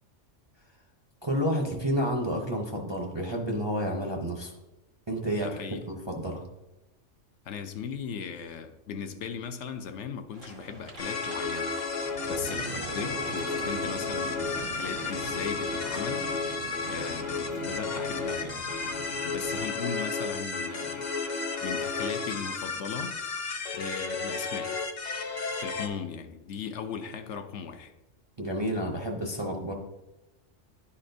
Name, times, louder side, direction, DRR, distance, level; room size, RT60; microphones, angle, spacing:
voice 1, 1.2-4.5 5.1-5.5 5.9-6.4 28.4-29.7, equal, 30° right, 1 dB, 0.5 m, -30 dB
voice 2, 5.4-5.9 7.4-11.8 12.3-16.3 16.8-18.7 19.2-21.1 21.6-23.1 23.7-24.7 25.6-27.9, left 6 dB, 70° left, 7 dB, 0.9 m, -38 dB
sound 1, 10.3-18.6, right 2 dB, 85° right, 1.8 m, -49 dB
sound 2, 11.0-25.9, left 4 dB, 45° left, 0.6 m, -32 dB
Fire, 12.0-19.6, right 4 dB, 65° right, 0.9 m, -42 dB
10.5 x 4.2 x 2.6 m, 1.0 s
omnidirectional pair, 1.3 m